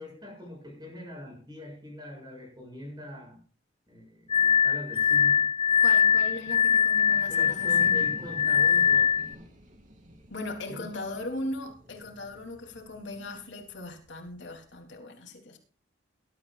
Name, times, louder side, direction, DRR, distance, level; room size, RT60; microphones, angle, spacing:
voice 1, 0.0-3.4 3.9-5.5 7.3-9.1 10.7-11.0, left 1 dB, 25° right, 2 dB, 7.5 m, -42 dB
Glass, 4.3-9.3, left 7 dB, 30° left, 0.6 m, -22 dB
sound 1, 4.5-15.0, equal, 40° right, 3.1 m, -51 dB
voice 2, 5.8-8.1 10.3-15.6, left 2 dB, 75° left, 2 dB, 3.5 m, -38 dB
21.0 x 12.5 x 2.6 m, 0.38 s
head